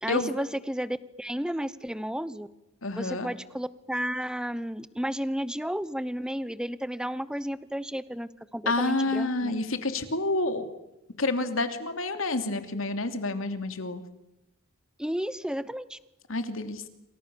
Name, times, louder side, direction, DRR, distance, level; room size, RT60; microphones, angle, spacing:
voice 1, 0.0-2.5 2.9-9.5 15.0-16.0, equal, 5° right, 16 dB, 0.9 m, -32 dB
voice 2, 2.8-3.3 8.7-10.7 11.2-14.0 16.3-16.9, left 2 dB, 80° left, 8 dB, 2.9 m, -29 dB
28.5 x 26.5 x 7.1 m, 0.92 s
head